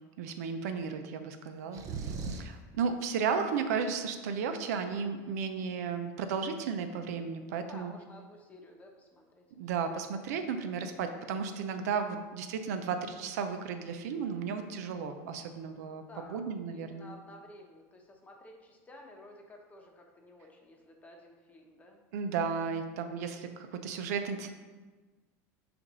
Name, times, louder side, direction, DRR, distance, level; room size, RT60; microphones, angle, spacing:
voice 1, 0.2-7.9 9.6-17.1 22.1-24.5, right 6 dB, 85° right, 7 dB, 0.6 m, -34 dB
sound 1, 1.7-2.6, right 5 dB, 40° right, 0.6 m, -37 dB
voice 2, 7.4-9.7 15.7-22.0, left 1 dB, 15° left, 1 dB, 0.9 m, -53 dB
6.9 x 2.6 x 5.4 m, 1.3 s
supercardioid pair, 130°, 8 cm